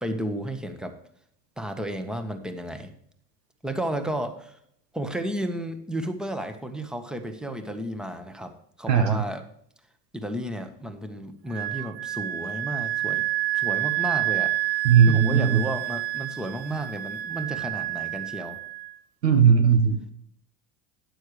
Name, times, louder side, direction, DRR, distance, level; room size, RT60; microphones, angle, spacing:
voice 1, 0.0-1.0 1.6-2.9 3.6-4.6 4.9-9.4 10.1-13.3 13.5-14.5 15.1-18.6, right 1 dB, ahead, 8 dB, 1.4 m, -32 dB
voice 2, 8.9-9.2 14.8-15.6 19.2-20.1, right 7 dB, 85° right, 7 dB, 1.6 m, -18 dB
Wind instrument woodwind instrument, 11.5-19.0, right 15 dB, 30° right, 0.4 m, -29 dB
12.5 x 9.9 x 3.3 m, 0.66 s
hypercardioid pair, 80°, 48 cm